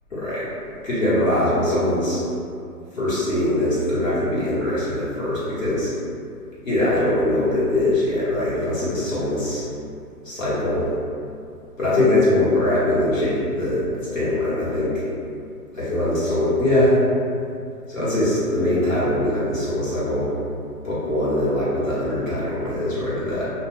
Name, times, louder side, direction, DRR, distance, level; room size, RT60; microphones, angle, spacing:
voice 1, 0.1-0.5 0.8-2.2 2.9-5.9 6.6-9.6 10.2-10.8 11.8-14.9 15.7-17.0 17.9-20.3 20.8-23.5, left 1 dB, 55° left, -10 dB, 1.1 m, -22 dB
2.3 x 2.2 x 3.3 m, 2.5 s
hypercardioid pair, 180°, 47 cm